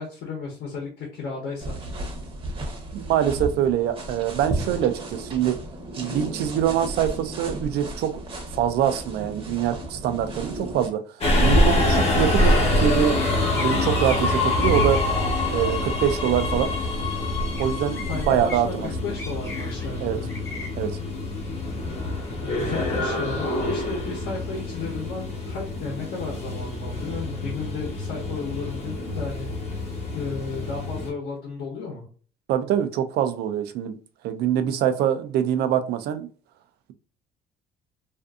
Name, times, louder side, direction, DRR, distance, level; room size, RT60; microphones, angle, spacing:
voice 1, 0.0-1.8 18.1-18.7 19.0-20.3 22.4-29.5 30.1-32.0, left 4 dB, 70° left, 0.9 m, -34 dB
sound 1, 1.6-10.9, right 2 dB, 35° right, 0.7 m, -34 dB
voice 2, 2.9-5.6 6.0-8.2 8.6-11.0 11.4-13.2 13.5-15.0 15.5-16.7 17.6-18.9 20.0-20.2 20.8-20.9 32.5-34.0 34.2-36.3, right 10 dB, 75° right, 0.4 m, -24 dB
Subway metro underground, 11.2-31.1, left 1 dB, 40° left, 0.9 m, -25 dB
sound 2, 13.2-15.0 17.5-17.6 17.9-18.6 19.2-19.9 20.3-20.7, left 2 dB, 15° left, 0.7 m, -37 dB
2.5 x 2.5 x 2.3 m
cardioid pair, 110°, 17 cm